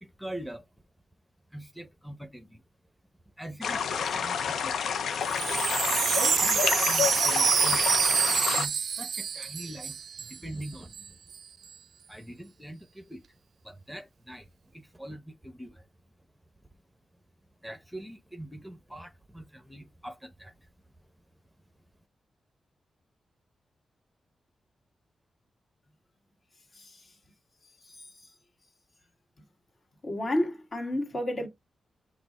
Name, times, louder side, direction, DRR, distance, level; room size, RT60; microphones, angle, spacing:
voice 1, 0.0-0.7 1.5-2.6 3.4-4.9 6.1-7.9 8.4-11.2 12.1-15.9 17.6-20.7, right 1 dB, 5° right, 0.8 m, -43 dB
sound 1, 3.6-8.7, left 7 dB, 85° left, 0.5 m, -29 dB
Wind chime, 5.1-10.4 10.6-10.7 10.9-11.4, right 7 dB, 75° right, 0.3 m, -27 dB
voice 2, 26.7-27.2 27.6-28.3 30.0-31.5, left 1 dB, 45° left, 1.8 m, -32 dB
5.9 x 2.1 x 4.1 m
cardioid pair, 80°, 0 cm